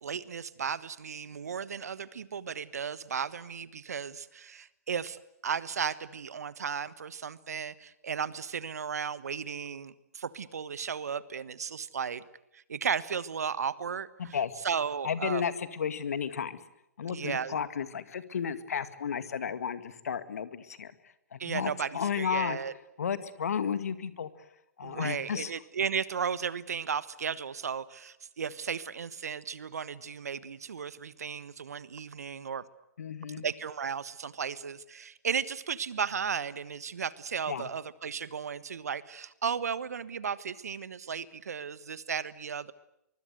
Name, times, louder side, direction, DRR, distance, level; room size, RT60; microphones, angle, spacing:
voice 1, 0.0-12.2 12.5-14.4 14.6-15.4 17.1-17.5 21.4-22.7 24.8-32.6 33.4-42.7, right 7 dB, 70° right, 17 dB, 1.4 m, -35 dB
voice 2, 14.2-14.5 15.0-16.6 17.0-20.9 21.3-22.6 23.0-24.3 24.8-25.5 33.0-33.4 37.5-37.7, left 7 dB, 65° left, 12 dB, 2.1 m, -33 dB
24.0 x 24.0 x 8.0 m, 0.83 s
figure-of-eight pair, 125°, 9 cm